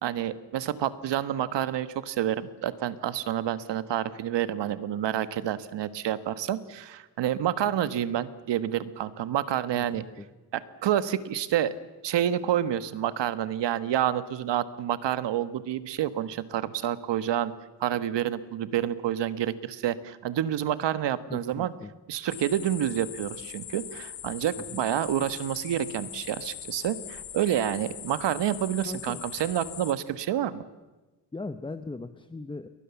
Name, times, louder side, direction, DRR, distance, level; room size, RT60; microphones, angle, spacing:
voice 1, 0.0-10.0 10.5-11.7 12.0-17.5 17.8-21.7 22.1-30.6, right 11 dB, 80° right, 14 dB, 1.5 m, -28 dB
voice 2, 21.3-21.9 24.6-24.8 28.8-29.2 31.3-32.7, left 3 dB, 10° left, 10 dB, 0.8 m, -39 dB
sound 1, 22.3-29.9, left 10 dB, 80° left, 2.7 m, -41 dB
29.5 x 23.0 x 7.2 m, 1.2 s
cardioid pair, 150°, 42 cm